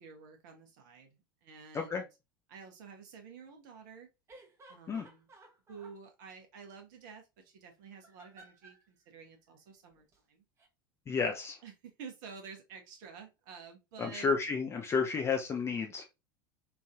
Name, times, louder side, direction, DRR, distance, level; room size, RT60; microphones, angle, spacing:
voice 1, 0.0-2.1 2.5-4.1 4.7-5.3 5.7-10.4 11.6-14.3, right 6 dB, 55° right, 4 dB, 0.9 m, -50 dB
sound 1, 4.3-6.0 7.9-8.8 10.0-10.2 10.6-10.7, right 2 dB, 25° right, 0.9 m, -57 dB
voice 2, 11.1-11.6 14.0-16.0, left 5 dB, 25° left, 3 dB, 0.5 m, -31 dB
3.2 x 2.6 x 2.5 m, 0.25 s
figure-of-eight pair, 75°, 12 cm